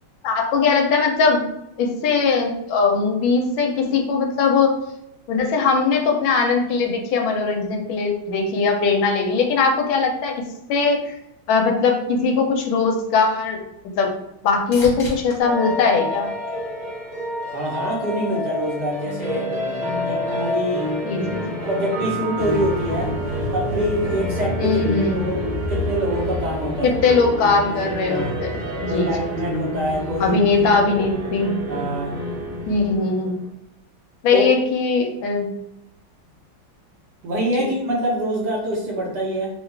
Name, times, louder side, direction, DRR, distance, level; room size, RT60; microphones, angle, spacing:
voice 1, 0.2-1.4 1.8-4.7 5.3-10.4 10.7-11.1 11.5-13.6 13.8-14.1 14.4-16.3 21.0-21.6 24.6-25.2 26.8-29.1 30.2-31.6 32.7-33.3 34.2-35.5 37.6-37.7, left 4 dB, 80° left, 2 dB, 1.4 m, -20 dB
sound 1, 13.6-17.2 17.7-18.3 26.1-26.2, left 2 dB, 45° left, 0.8 m, -39 dB
sound 2, 15.4-33.5, equal, 45° right, 0.8 m, -29 dB
voice 2, 17.5-19.5 20.0-21.0 21.6-23.1 23.5-27.2 28.1-28.4 28.9-30.4 31.7-32.1 34.3-34.5 37.2-39.5, right 1 dB, 65° right, -4 dB, 1.3 m, -25 dB
sound 3, 22.4-33.0, left 2 dB, 80° right, 1.4 m, -32 dB
3.5 x 2.3 x 3.2 m, 0.83 s
omnidirectional pair, 2.2 m